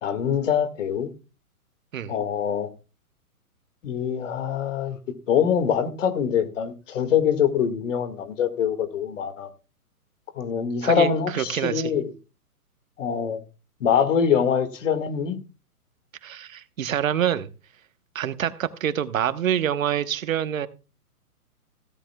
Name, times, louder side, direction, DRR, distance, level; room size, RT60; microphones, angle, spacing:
voice 1, 0.0-1.1 2.1-2.7 3.8-5.0 5.3-9.5 10.4-12.1 13.0-13.4 13.8-15.4, left 8 dB, 55° left, 2.0 m, -24 dB
voice 2, 10.8-11.9 16.2-17.5 18.1-20.7, right 10 dB, 60° right, 1.1 m, -26 dB
16.5 x 13.0 x 2.3 m
figure-of-eight pair, 120°, 45 cm